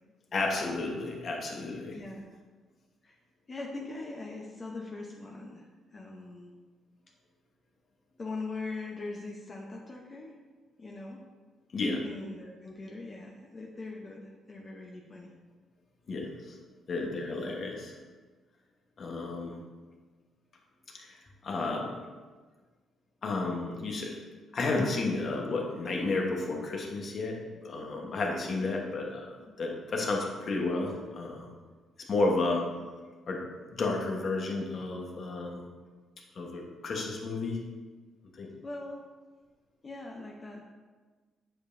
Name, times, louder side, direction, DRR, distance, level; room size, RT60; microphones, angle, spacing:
voice 1, 0.3-2.0 11.7-12.0 16.1-16.6 16.9-17.9 19.0-19.6 20.9-21.9 23.2-24.2 24.5-31.5 32.0-32.6 33.3-33.4 33.7-35.6 36.3-37.6 38.4-38.5, left 3 dB, 50° left, 0 dB, 1.2 m, -32 dB
voice 2, 1.9-2.3 3.0-3.2 3.5-5.7 5.9-6.5 8.2-10.3 10.8-11.2 12.0-15.3 28.6-28.9 29.5-29.6 38.6-39.0 39.8-40.6, left 3 dB, 35° left, -1 dB, 0.8 m, -41 dB
8.0 x 5.0 x 2.7 m, 1.4 s
cardioid pair, 90°, 0 cm